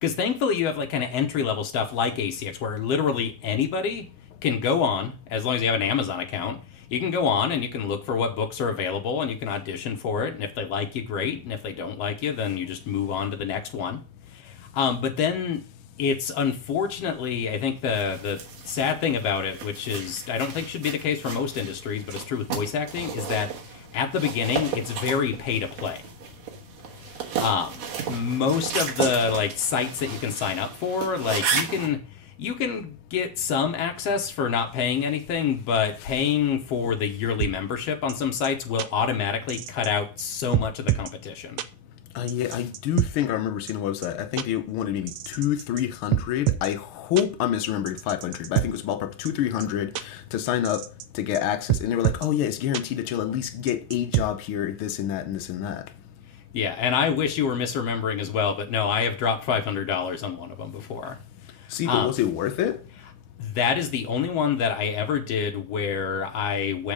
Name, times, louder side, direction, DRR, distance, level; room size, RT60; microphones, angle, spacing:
voice 1, 0.0-4.1 4.4-14.0 14.3-15.6 16.0-26.0 27.4-32.0 32.4-41.6 56.5-61.2 61.9-62.1 63.4-66.9, left 6 dB, 65° left, 1.9 m, -27 dB
sound 1, 17.9-31.9, right 7 dB, 65° right, 2.3 m, -34 dB
sound 2, 37.4-37.5 38.1-38.2 38.4-38.5 38.8-38.9 39.5-39.9 40.2-40.3 40.5-41.1 41.6-41.7 42.3-43.1 43.7-43.8 44.0-44.1 44.4-44.5 45.1-45.8 46.1-46.7 47.2-47.3 47.9-48.7 49.3-49.4 49.6-49.7 50.0-50.1 50.7-51.0 51.3-51.4 51.7-52.3 52.7-52.8 53.4-54.3, right 15 dB, 80° right, 1.5 m, -26 dB
voice 2, 42.1-50.8 51.1-55.8 61.7-62.8, left 11 dB, 85° left, 1.1 m, -27 dB
7.5 x 5.2 x 4.9 m
omnidirectional pair, 3.4 m